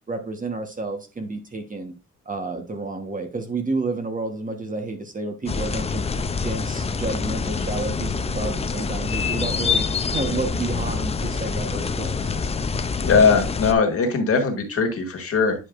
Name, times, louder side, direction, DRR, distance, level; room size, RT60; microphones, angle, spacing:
voice 1, 0.1-1.9 2.2-6.0 6.4-12.3, right 3 dB, 25° right, 5 dB, 1.2 m, -30 dB
sound 1, 5.5-13.7, left 5 dB, 20° left, 0.4 m, -26 dB
voice 2, 13.0-15.5, left 5 dB, 45° left, 4 dB, 1.8 m, -20 dB
9.7 x 4.9 x 2.5 m, 0.29 s
cardioid pair, 120°, 32 cm